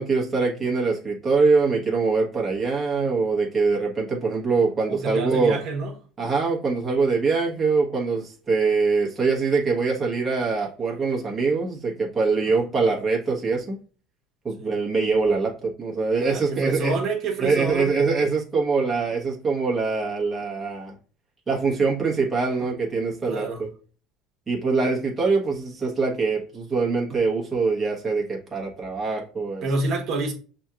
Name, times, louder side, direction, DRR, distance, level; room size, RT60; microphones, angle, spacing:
voice 1, 0.0-5.6 6.2-13.8 14.4-17.0 17.4-20.9 21.5-23.5 24.5-29.6, right 4 dB, 20° right, 1.1 m, -23 dB
voice 2, 4.9-5.9 14.6-14.7 16.2-18.0 23.3-23.6 29.6-30.3, right 3 dB, 50° right, 1.1 m, -27 dB
6.0 x 2.8 x 2.4 m
supercardioid pair, 130°, 0 cm